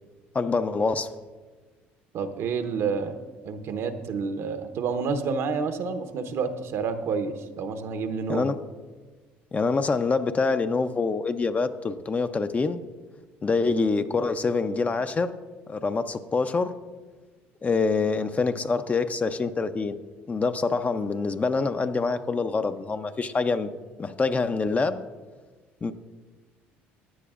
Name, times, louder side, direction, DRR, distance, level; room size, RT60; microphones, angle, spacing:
voice 1, 0.3-1.1 8.3-8.6 9.5-12.8 13.4-15.3 15.7-16.7 17.6-20.0 20.3-23.7 24.0-25.0 25.8-25.9, left 4 dB, 30° left, 9 dB, 0.6 m, -25 dB
voice 2, 2.1-3.2 3.4-8.5, right 5 dB, 60° right, 8 dB, 0.9 m, -29 dB
15.5 x 10.0 x 2.5 m, 1.3 s
supercardioid pair, 70°, 5 cm